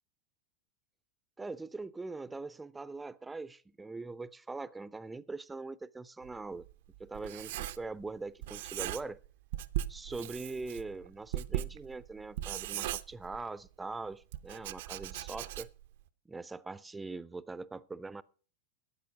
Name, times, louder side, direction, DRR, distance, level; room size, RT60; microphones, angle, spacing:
voice 1, 1.4-6.7 7.0-9.2 9.9-15.7 16.3-18.2, right 3 dB, 10° right, 0.6 m, -42 dB
Writing, 6.3-8.1 8.4-9.3 9.5-13.7 14.3-15.9, right 13 dB, 55° right, 0.6 m, -39 dB
13.0 x 9.0 x 5.1 m
figure-of-eight pair, 90°, 0 cm